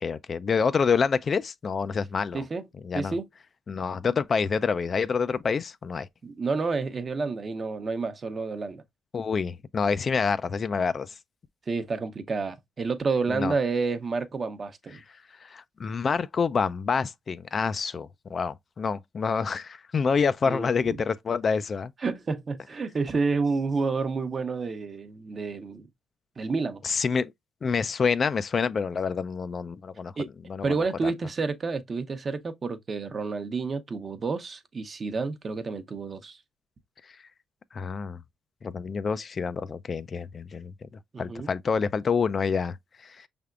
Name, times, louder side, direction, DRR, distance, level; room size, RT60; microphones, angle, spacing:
voice 1, 0.0-2.4 2.8-3.2 3.7-6.1 9.1-11.1 13.3-13.5 15.4-21.9 26.8-27.3 27.6-30.1 30.5-30.7 31.0-31.1 37.7-38.2 38.6-40.7 41.2-42.8 43.0-43.2, left 5 dB, 45° left, 0.4 m, -27 dB
voice 2, 2.3-2.7 2.9-3.3 6.2-8.8 11.7-15.0 20.4-21.0 22.0-25.9 26.4-26.8 30.2-30.3 30.6-36.4 41.1-41.5, right 4 dB, 40° right, 0.8 m, -29 dB
5.6 x 3.5 x 2.4 m
cardioid pair, 90°, 0 cm